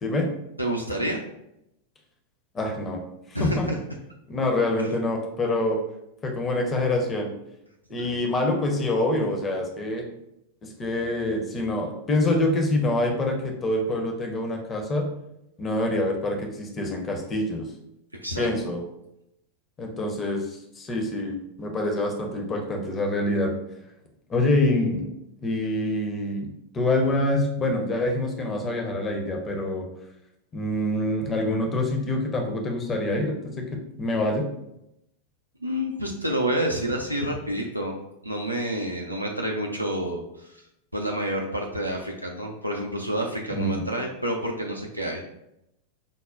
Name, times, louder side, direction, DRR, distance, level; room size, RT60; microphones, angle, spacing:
voice 1, 0.6-1.2 3.3-3.8 4.8-4.9 8.0-8.2 18.2-18.5 35.6-37.9 38.2-40.6 40.9-45.2, right 1 dB, 85° right, 0 dB, 0.4 m, -28 dB
voice 2, 2.5-3.0 3.3-3.7 4.3-5.8 6.2-7.3 7.9-10.0 10.6-15.1 15.6-17.7 18.4-18.8 19.8-23.5 24.3-25.1 25.4-26.5 26.7-29.9 30.5-33.6 34.0-34.5 43.5-43.8, left 1 dB, 25° left, 2 dB, 0.5 m, -26 dB
5.2 x 2.1 x 2.4 m, 0.83 s
figure-of-eight pair, 90°, 0 cm